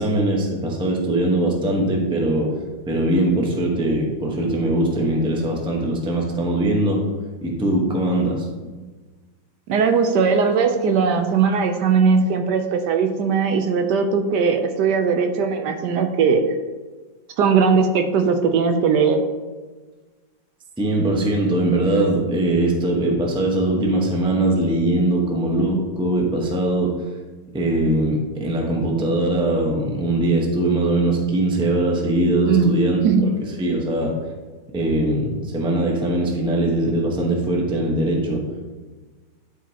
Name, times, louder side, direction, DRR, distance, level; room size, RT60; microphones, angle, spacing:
voice 1, 0.0-2.5 2.8-7.0 7.4-8.7 20.8-26.9 27.5-34.2 34.7-38.4, right 1 dB, 5° right, -1 dB, 0.7 m, -21 dB
voice 2, 9.7-16.4 17.4-19.2 32.5-32.7 33.0-33.3, right 5 dB, 75° right, 6 dB, 1.2 m, -19 dB
11.0 x 4.9 x 2.8 m, 1.3 s
omnidirectional pair, 2.0 m